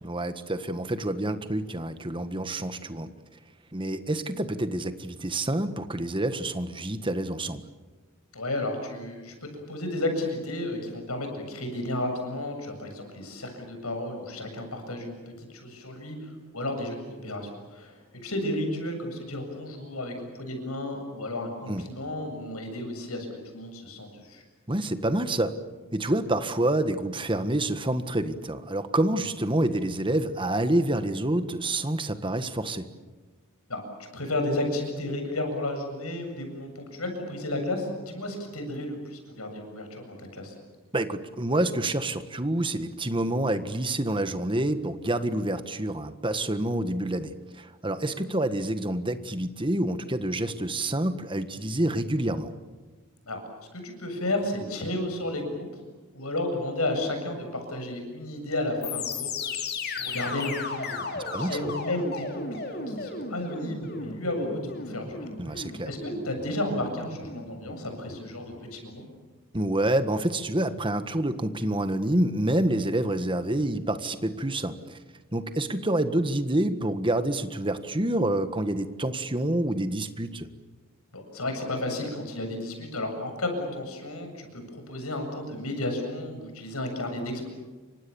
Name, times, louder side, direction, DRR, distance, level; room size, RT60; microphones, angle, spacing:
voice 1, 0.0-3.1 3.7-7.6 21.7-21.8 24.7-25.6 25.9-32.8 40.9-52.5 61.1-61.8 65.4-65.9 69.5-75.0 75.3-80.5, right 1 dB, 25° right, 9 dB, 1.5 m, -27 dB
voice 2, 8.3-23.3 23.5-24.4 33.7-40.5 53.2-53.4 53.7-55.7 56.1-59.6 60.0-61.1 61.3-69.0 81.1-87.5, left 1 dB, 85° left, 5 dB, 7.7 m, -33 dB
sound 1, 58.8-68.8, left 3 dB, 45° left, 3.7 m, -36 dB
29.5 x 25.0 x 7.2 m, 1.3 s
head